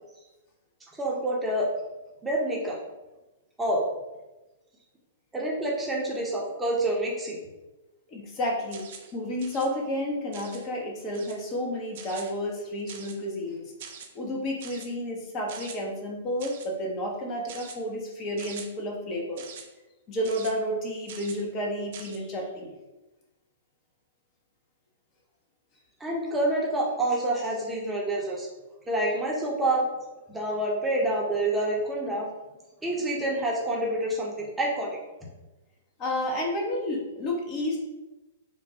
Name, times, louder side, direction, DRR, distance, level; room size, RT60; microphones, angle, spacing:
voice 1, 0.9-1.7 2.2-2.8 3.6-3.8 5.3-7.4 26.0-28.5 28.9-29.8 30.3-32.3 32.8-35.3, right 1 dB, 10° right, -3 dB, 0.6 m, -27 dB
voice 2, 8.1-13.7 14.1-19.4 20.1-22.7 36.0-37.8, left 1 dB, 30° left, 0 dB, 0.6 m, -31 dB
sound 1, 8.7-9.1 9.4-9.7 10.3-10.7 11.1-11.5 12.0-12.3 12.9-13.3 13.8-14.1 14.6-14.9 15.5-15.8 16.4-16.7 17.5-17.8 18.4-18.7 19.4-19.7 20.2-20.5 21.1-21.4 21.9-22.2, right 7 dB, 50° right, 0.4 m, -43 dB
3.1 x 2.2 x 2.7 m, 1.1 s
figure-of-eight pair, 110°, 0 cm